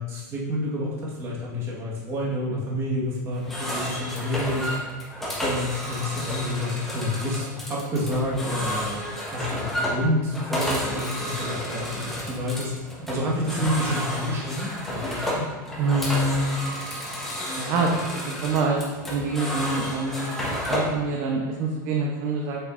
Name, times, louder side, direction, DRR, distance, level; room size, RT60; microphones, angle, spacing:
voice 1, 0.0-4.7 5.4-9.0 9.2-15.5, left 1 dB, 25° right, -5 dB, 1.5 m, -29 dB
sound 1, 3.3-21.0, equal, 5° left, 1.3 m, -31 dB
voice 2, 15.8-16.6 17.6-18.0 18.3-22.6, right 3 dB, 50° right, -1 dB, 0.8 m, -26 dB
7.2 x 5.4 x 2.6 m, 1.2 s
supercardioid pair, 140°, 10 cm